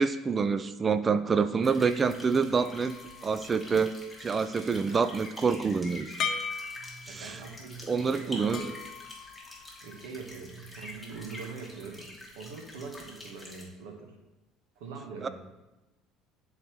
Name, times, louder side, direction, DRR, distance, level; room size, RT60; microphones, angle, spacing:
voice 1, 0.0-2.9 3.2-3.9 4.2-6.1 7.1-7.3 7.9-8.6 15.2-15.3, right 5 dB, 30° right, 12 dB, 0.3 m, -27 dB
sound 1, 1.6-13.6, left 1 dB, 5° left, 1.5 m, -47 dB
sound 2, 2.6-4.2 6.2-7.5 8.5-10.1, left 6 dB, 55° left, 0.5 m, -38 dB
voice 2, 6.8-8.7 9.8-12.1 12.3-14.1 14.8-15.3, right 4 dB, 85° right, 2 dB, 1.2 m, -43 dB
10.0 x 4.0 x 3.0 m, 1.0 s
supercardioid pair, 105°, 0 cm